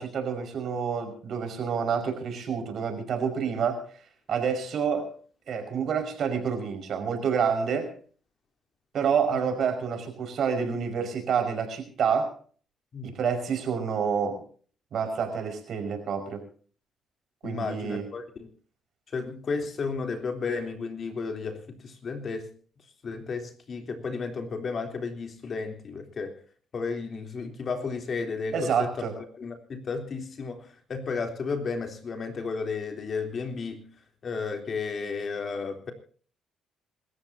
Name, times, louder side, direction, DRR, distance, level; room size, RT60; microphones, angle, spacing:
voice 1, 0.0-3.8 4.3-5.1 5.5-7.9 8.9-12.3 13.0-14.4 14.9-16.4 17.4-18.1 28.5-29.1, right 6 dB, 65° right, 6 dB, 5.4 m, -28 dB
voice 2, 17.4-18.5 19.1-22.5 23.0-26.3 26.7-28.9 29.2-33.9 34.2-35.9, left 4 dB, 50° left, 5 dB, 3.5 m, -33 dB
26.5 x 14.0 x 2.8 m, 0.44 s
cardioid pair, 90°, 0 cm